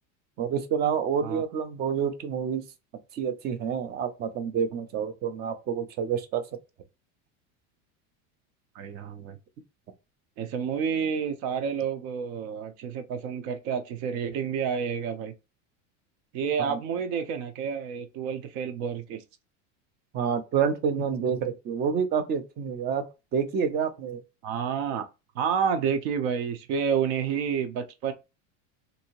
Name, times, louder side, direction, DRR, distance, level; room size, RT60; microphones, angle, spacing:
voice 1, 0.4-2.6 3.1-6.4 16.6-16.8 20.1-23.1 23.3-24.2, right 7 dB, 30° right, 0.4 m, -28 dB
voice 2, 8.7-9.4 10.4-15.3 16.3-19.2 24.4-25.0 25.3-28.1, right 7 dB, 65° right, 0.7 m, -29 dB
2.7 x 2.6 x 2.9 m
supercardioid pair, 145°, 37 cm